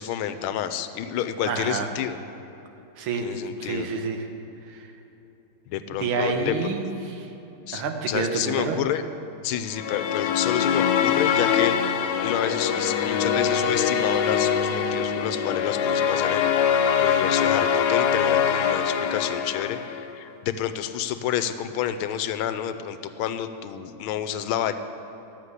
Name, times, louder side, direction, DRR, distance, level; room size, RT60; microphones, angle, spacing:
voice 1, 0.0-2.2 3.2-3.9 5.7-6.6 7.7-9.0 9.4-16.5 17.0-24.7, left 10 dB, 85° left, 11 dB, 1.5 m, -29 dB
voice 2, 1.4-1.9 3.0-4.3 4.7-4.9 5.9-7.3 7.7-8.8, right 4 dB, 80° right, 5 dB, 1.8 m, -28 dB
sound 1, 9.7-20.1, left 7 dB, 70° left, 1.0 m, -23 dB
11.5 x 7.2 x 8.0 m, 3.0 s
omnidirectional pair, 2.3 m